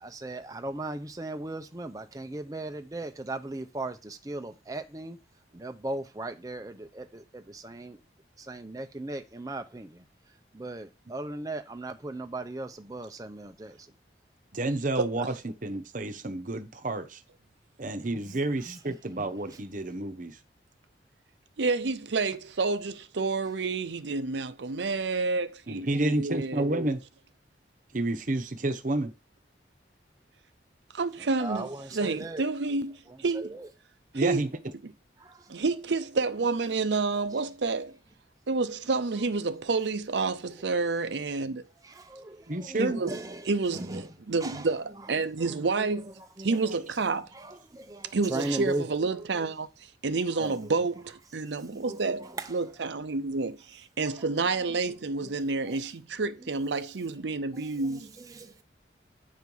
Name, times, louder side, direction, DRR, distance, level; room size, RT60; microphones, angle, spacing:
voice 1, 0.0-5.2 5.5-8.0 8.5-10.0 10.5-13.8 18.7-18.8 31.4-32.4 35.2-35.4 41.8-42.8 43.1-43.4 43.7-44.0 44.4-44.6 45.8-45.9 46.4-46.6 47.4-48.8 50.4-50.7 51.7-52.0 52.4-52.5 55.7-55.8 57.8-58.6, right 2 dB, 20° right, 0.6 m, -37 dB
voice 2, 14.5-17.2 17.8-20.4 25.7-27.0 27.9-29.1 34.1-34.5 42.5-43.0, right 2 dB, 45° right, 0.9 m, -30 dB
voice 3, 21.6-26.6 30.9-33.6 34.1-34.5 35.5-38.0 38.5-41.7 42.8-43.1 43.4-46.1 46.4-47.3 48.1-49.7 50.0-58.1, right 3 dB, 80° right, 0.6 m, -29 dB
9.4 x 4.6 x 5.4 m
head